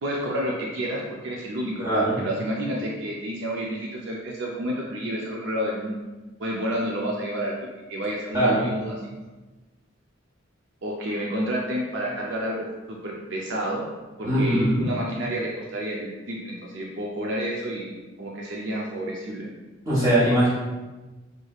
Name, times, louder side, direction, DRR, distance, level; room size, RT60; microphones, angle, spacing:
voice 1, 0.0-6.0 6.4-7.5 7.9-9.1 10.8-13.9 14.2-19.5, equal, 70° right, -2 dB, 0.5 m, -30 dB
voice 2, 1.8-2.2 8.3-8.6 14.2-14.8 19.8-20.5, right 1 dB, 20° right, -11 dB, 1.1 m, -21 dB
5.2 x 3.1 x 2.4 m, 1.2 s
head